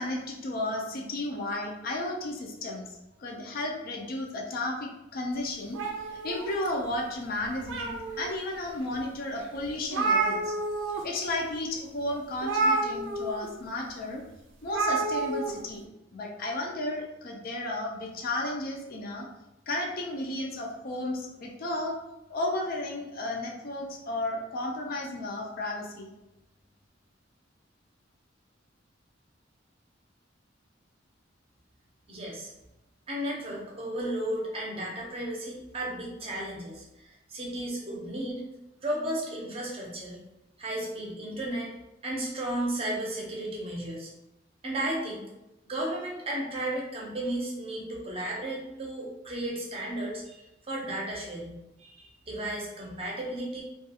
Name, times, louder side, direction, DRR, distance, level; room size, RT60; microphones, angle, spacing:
voice 1, 0.0-5.8 6.2-10.5 10.9-14.2 14.6-15.8 16.1-19.3 19.7-21.9 22.3-26.1, left 1 dB, 50° left, 1 dB, 0.4 m, -33 dB
sound 1, 5.7-6.9 7.4-8.3 8.9-9.0 9.4-9.5 9.6-11.0 11.3-11.5 12.4-13.5 14.7-15.5, right 3 dB, 75° right, 0.4 m, -29 dB
voice 2, 32.1-32.5 33.1-38.4 38.8-40.2 40.6-41.7 42.0-44.1 44.6-45.3 45.7-53.6, right 1 dB, 30° right, -3 dB, 0.6 m, -34 dB
2.4 x 2.3 x 2.7 m, 0.95 s
head